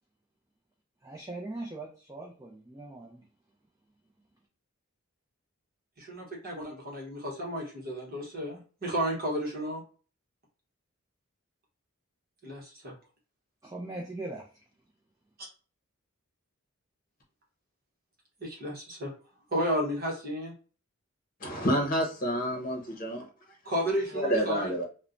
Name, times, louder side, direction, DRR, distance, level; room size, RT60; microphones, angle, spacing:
voice 1, 1.0-3.2 13.6-14.5, right 2 dB, 15° right, 0.4 m, -40 dB
voice 2, 6.0-9.8 12.4-12.9 18.4-19.1 19.5-20.5 23.6-24.7, equal, 45° right, 1.0 m, -32 dB
voice 3, 21.4-23.3 24.1-24.8, equal, 40° left, 0.8 m, -29 dB
3.0 x 2.1 x 2.5 m
head